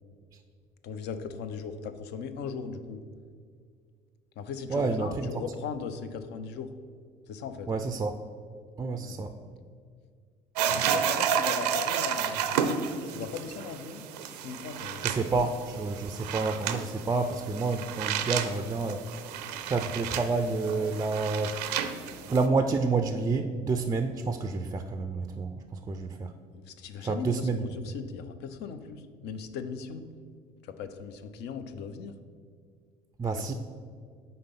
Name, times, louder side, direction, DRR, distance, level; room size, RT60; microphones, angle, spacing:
voice 1, 0.8-3.0 4.4-6.7 7.3-7.8 9.0-9.2 10.9-12.7 13.1-15.1 26.5-30.0 30.6-32.1 33.3-33.5, left 6 dB, 60° left, 10 dB, 0.5 m, -38 dB
voice 2, 4.7-5.3 7.7-8.2 8.8-9.3 15.0-19.1 19.7-21.6 22.3-26.3 27.0-27.6 33.2-33.5, right 3 dB, 20° right, 7 dB, 0.4 m, -29 dB
sound 1, 10.6-22.5, right 8 dB, 85° right, 0.5 m, -32 dB
5.1 x 3.9 x 5.7 m, 2.1 s
hypercardioid pair, 60°, 20 cm